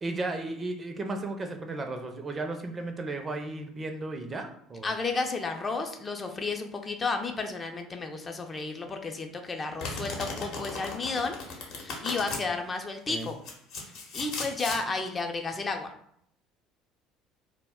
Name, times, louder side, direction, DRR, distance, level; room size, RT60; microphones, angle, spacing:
voice 1, 0.0-4.9 13.1-13.3, right 2 dB, 30° right, 5 dB, 0.5 m, -34 dB
voice 2, 4.8-11.4 11.8-13.4 14.1-15.9, left 3 dB, 30° left, 4 dB, 0.4 m, -32 dB
Domestic sounds home sounds, 9.8-12.4 13.2-14.8, left 3 dB, 65° left, 0.8 m, -36 dB
2.3 x 2.1 x 3.5 m, 0.69 s
hypercardioid pair, 70°, 0 cm